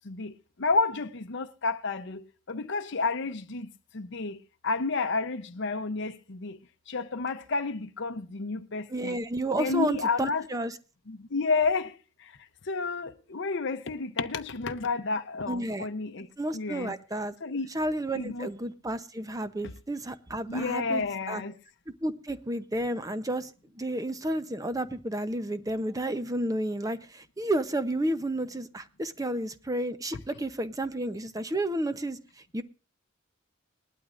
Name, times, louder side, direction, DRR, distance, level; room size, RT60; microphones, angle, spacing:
voice 1, 0.0-4.4 4.6-6.6 6.9-9.2 9.5-10.5 11.1-12.4 12.6-16.3 16.5-16.9 17.4-17.7 18.1-18.5 20.5-21.5, left 3 dB, 60° left, 0.7 m, -31 dB
voice 2, 8.9-10.8 15.5-15.9 16.4-17.3 17.7-21.4 21.9-32.6, right 1 dB, 15° right, 0.7 m, -31 dB
20.0 x 12.0 x 2.5 m
head